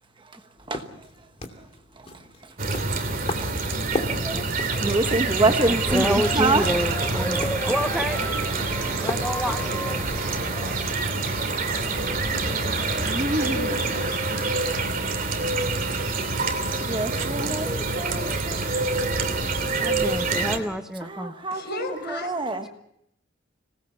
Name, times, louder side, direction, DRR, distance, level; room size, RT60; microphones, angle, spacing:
sound 1, 0.6-9.8, left 1 dB, 30° left, 2.7 m, -37 dB
sound 2, 2.6-20.6, right 3 dB, 45° right, 2.9 m, -26 dB
voice 1, 4.0-4.5 5.4-10.4 13.4-13.8 17.4-18.6 19.8-21.4 22.1-22.2 22.5-22.7, equal, 5° right, 6 dB, 0.9 m, -30 dB
sound 3, 4.7-12.9, equal, 15° left, 4.0 m, -38 dB
voice 2, 4.8-6.6 13.0-13.6 16.8-17.7 21.1-21.6 22.0-22.6, right 2 dB, 25° right, 7 dB, 1.2 m, -24 dB
voice 3, 13.5-14.1 21.5-22.7, left 2 dB, 55° left, 5 dB, 5.9 m, -35 dB
26.0 x 19.0 x 7.0 m, 0.74 s
head